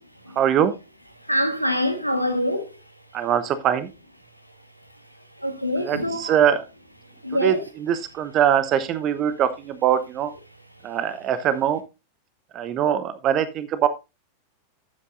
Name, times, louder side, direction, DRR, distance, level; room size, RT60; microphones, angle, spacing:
voice 1, 0.4-0.7 3.1-3.9 5.8-6.6 7.3-10.3 10.8-11.8 12.5-13.9, right 9 dB, 35° right, 0.9 m, -22 dB
voice 2, 1.3-2.6 5.4-6.2 7.2-7.6, left 1 dB, 90° right, 1.4 m, -24 dB
12.0 x 8.2 x 2.6 m
figure-of-eight pair, 90°, 0 cm